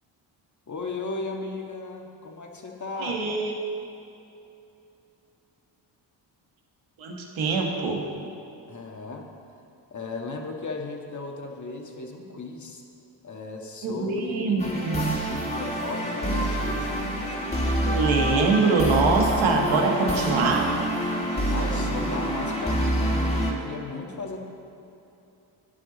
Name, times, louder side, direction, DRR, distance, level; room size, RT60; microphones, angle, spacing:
voice 1, 0.7-3.3 8.7-9.3 9.9-12.8 13.2-14.9 15.3-16.9 21.5-24.4, left 3 dB, 35° left, 1 dB, 1.7 m, -36 dB
voice 2, 2.9-3.5 7.0-8.0 13.8-15.1 17.8-20.7, right 4 dB, 75° right, 1 dB, 1.6 m, -24 dB
sound 1, 14.6-23.5, equal, 15° left, 2.2 m, -27 dB
11.5 x 9.9 x 4.1 m, 2.8 s
supercardioid pair, 60°, 48 cm